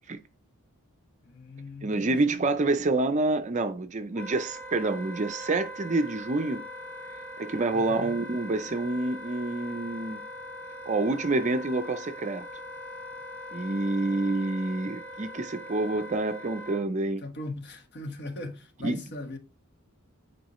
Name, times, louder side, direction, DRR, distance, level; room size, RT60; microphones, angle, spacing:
voice 1, 1.2-2.4 7.7-8.2 17.2-19.4, left 1 dB, 50° left, 1.2 m, -39 dB
voice 2, 1.8-6.6 7.4-10.2 10.9-12.4 13.5-17.2 18.8-19.0, right 2 dB, 35° right, 0.5 m, -27 dB
Wind instrument woodwind instrument, 4.2-16.8, left 1 dB, 5° left, 0.9 m, -41 dB
9.2 x 4.5 x 3.0 m
head